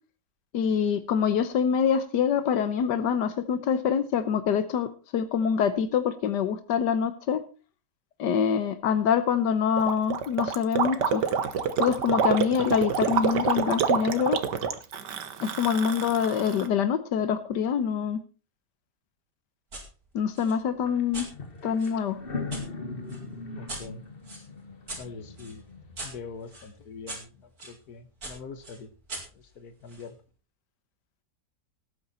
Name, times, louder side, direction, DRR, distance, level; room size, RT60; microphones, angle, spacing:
voice 1, 0.5-7.4 8.2-11.2 11.8-14.4 15.4-18.2 20.1-21.3 21.6-22.2, left 7 dB, 90° left, 12 dB, 1.6 m, -25 dB
Gurgling, 9.8-16.7, right 7 dB, 85° right, 1.8 m, -27 dB
sound 1, 19.7-19.9 20.3-22.6 23.1-27.8 28.2-30.1, right 2 dB, 60° right, 4.9 m, -42 dB
sound 2, 20.9-21.0 21.3-26.2, left 3 dB, 35° left, 1.8 m, -39 dB
voice 2, 23.5-24.0 25.0-25.6 26.0-28.9 29.3-30.2, left 4 dB, 65° left, 10 dB, 1.9 m, -43 dB
18.0 x 9.2 x 4.3 m, 0.34 s
omnidirectional pair, 1.8 m